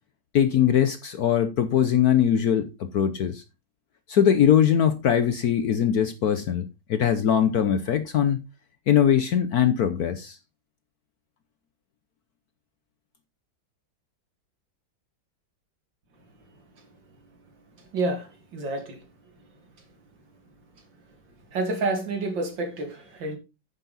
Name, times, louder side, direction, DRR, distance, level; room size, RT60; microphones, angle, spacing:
voice 1, 0.3-3.4 4.1-6.6 6.9-8.4 8.9-10.4, left 9 dB, 60° left, 1.1 m, -21 dB
voice 2, 17.8-19.0 21.5-23.4, right 2 dB, 65° right, 2.9 m, -29 dB
9.4 x 7.2 x 4.1 m
omnidirectional pair, 2.2 m